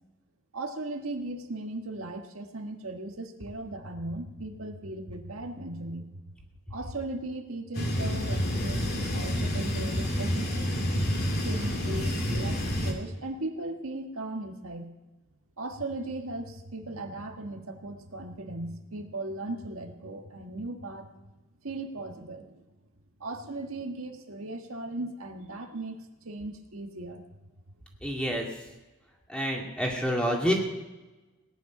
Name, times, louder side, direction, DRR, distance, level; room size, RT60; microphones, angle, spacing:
voice 1, 0.5-6.2 6.7-11.0 11.4-14.9 15.6-21.1 21.6-22.6 23.2-27.2, right 2 dB, 85° right, 4 dB, 1.5 m, -37 dB
sound 1, 7.8-12.9, equal, 50° left, 2.4 m, -28 dB
voice 2, 28.0-28.5 29.3-30.5, equal, 5° left, -1 dB, 2.2 m, -28 dB
18.5 x 10.0 x 6.0 m, 1.1 s
head